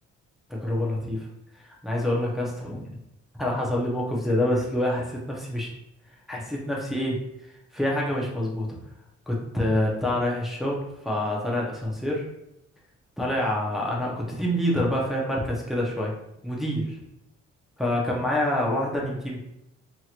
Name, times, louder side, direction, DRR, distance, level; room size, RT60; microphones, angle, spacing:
voice 1, 0.5-1.3 1.5-3.0 3.3-5.7 6.3-8.7 9.3-12.2 13.2-16.1 16.4-17.0 17.8-19.4, left 1 dB, ahead, -4 dB, 0.8 m, -27 dB
3.0 x 2.8 x 2.5 m, 0.82 s
cardioid pair, 90°, 30 cm